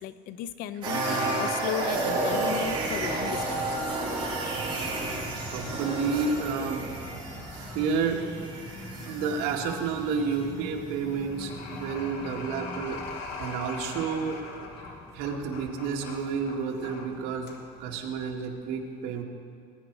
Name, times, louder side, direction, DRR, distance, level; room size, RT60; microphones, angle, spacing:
voice 1, 0.0-4.0, left 9 dB, 55° left, 14 dB, 0.5 m, -35 dB
sound 1, 0.8-10.0 10.3-10.4, right 2 dB, 25° right, 4.1 m, -31 dB
sound 2, 2.6-18.6, left 4 dB, 75° left, 2.1 m, -45 dB
sound 3, 2.7-15.7, left 1 dB, 25° left, 1.6 m, -44 dB
voice 2, 5.5-6.9 7.7-8.3 9.1-13.0 13.4-14.4 15.1-17.5 17.8-19.2, right 5 dB, 70° right, 1 dB, 1.9 m, -30 dB
21.0 x 9.9 x 4.7 m, 2.4 s
cardioid pair, 160°, 18 cm